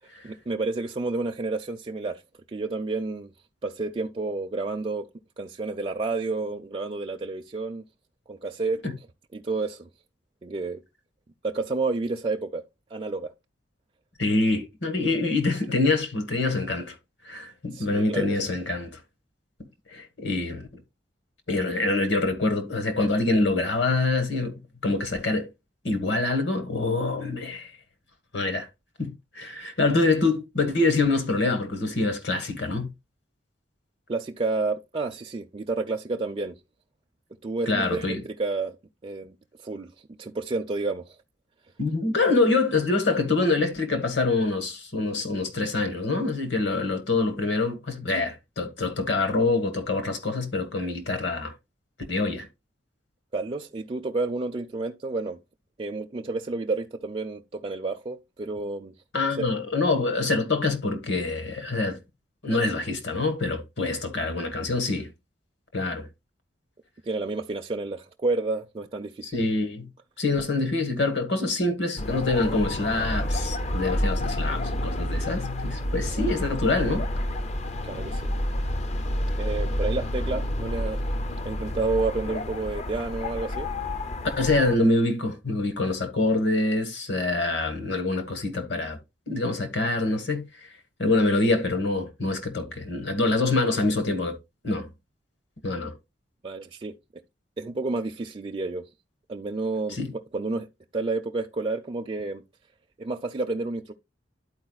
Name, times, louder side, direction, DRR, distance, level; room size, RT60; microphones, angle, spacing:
voice 1, 0.2-2.2 2.5-3.3 3.6-5.1 5.4-7.8 8.3-8.8 9.3-9.9 10.4-10.8 11.4-12.6 12.9-13.3 17.7-18.4 34.1-36.6 37.4-38.8 39.0-39.3 39.6-39.9 40.2-41.2 53.3-55.4 55.8-58.9 62.5-62.6 67.0-69.4 77.8-78.3 79.4-81.0 81.4-83.7 96.4-96.9 97.6-98.9 99.3-100.7 100.9-102.4 103.0-103.9, right 3 dB, 30° right, 0.4 m, -30 dB
voice 2, 14.2-16.9 17.2-19.0 19.9-20.7 21.5-25.5 25.8-27.7 28.3-28.7 29.0-32.9 37.7-38.2 41.8-51.5 52.1-52.5 59.1-62.0 62.4-65.1 65.7-66.1 69.3-69.9 70.2-77.0 84.4-89.0 89.3-90.5 91.0-94.4 94.6-94.9 95.6-95.9 99.9-100.1, left 2 dB, 65° left, 1.5 m, -25 dB
sound 1, 72.0-84.8, left 1 dB, 35° left, 0.5 m, -29 dB
12.0 x 4.6 x 2.3 m
head